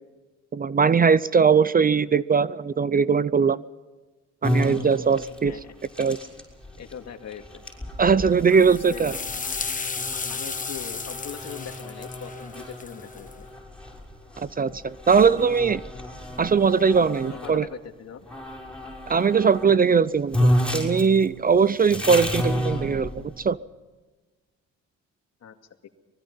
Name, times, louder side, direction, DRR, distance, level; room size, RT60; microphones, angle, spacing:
voice 1, 0.5-3.6 4.4-5.6 6.0-6.2 8.0-9.2 14.4-15.8 16.4-17.7 19.1-23.6, right 6 dB, 30° right, 18 dB, 0.6 m, -20 dB
sound 1, 4.4-17.6 18.3-19.7 20.0-20.1 20.3-23.4, equal, 5° left, 6.1 m, -31 dB
voice 2, 6.8-7.6 8.5-9.1 10.1-13.5 15.2-15.6 17.3-18.3 25.4-25.6 25.8-25.9, left 8 dB, 60° left, 5 dB, 2.3 m, -41 dB
sound 2, 8.5-13.3, left 4 dB, 25° left, 1.4 m, -34 dB
24.0 x 21.5 x 5.6 m, 1.3 s
cardioid pair, 90°, 30 cm